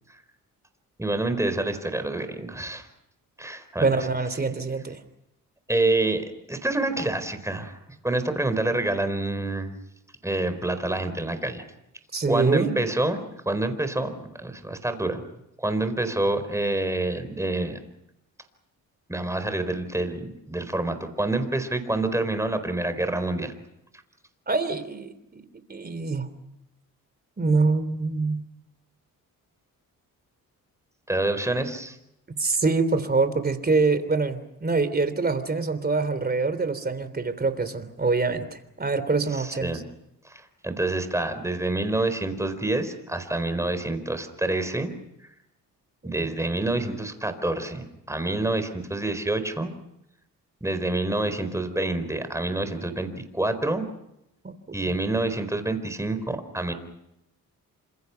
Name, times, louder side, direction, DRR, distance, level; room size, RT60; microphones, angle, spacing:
voice 1, 1.0-2.9 3.4-3.9 5.7-7.8 8.0-9.7 10.2-11.6 12.3-13.2 13.5-14.1 14.4-15.2 15.6-17.8 19.1-23.5 31.1-32.0 39.3-39.8 40.2-44.9 46.0-49.7 50.6-53.9 54.7-56.7, right 2 dB, 10° right, 9 dB, 4.3 m, -27 dB
voice 2, 3.8-5.0 12.1-12.8 24.5-25.4 25.7-26.3 27.4-28.4 32.4-39.8 46.2-46.3 54.4-54.5 54.8-54.9, right 3 dB, 25° right, 11 dB, 3.4 m, -25 dB
28.5 x 26.5 x 5.9 m, 0.85 s
cardioid pair, 95°, 34 cm